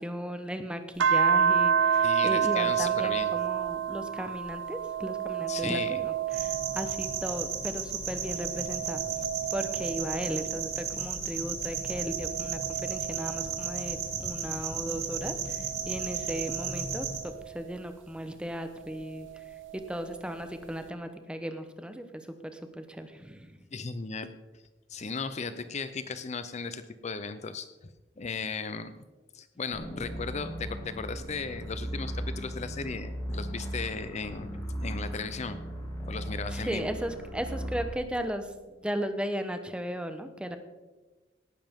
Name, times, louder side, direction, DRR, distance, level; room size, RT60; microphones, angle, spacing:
voice 1, 0.0-9.0 9.5-19.3 19.7-23.6 36.5-40.6, equal, 5° right, 8 dB, 0.9 m, -36 dB
sound 1, 1.0-7.7 8.2-11.1 11.7-14.4 15.2-17.6 19.0-20.0, right 7 dB, 85° right, 0.5 m, -30 dB
voice 2, 2.0-3.3 5.5-6.0 14.1-14.3 23.7-24.4 24.9-27.7 28.2-28.9 29.3-35.6 36.1-36.9, left 4 dB, 40° left, 11 dB, 0.5 m, -36 dB
sound 2, 6.3-17.2, right 6 dB, 55° right, 2.3 m, -34 dB
sound 3, 29.7-37.9, equal, 15° left, 3.0 m, -37 dB
18.0 x 10.5 x 3.6 m, 1.2 s
head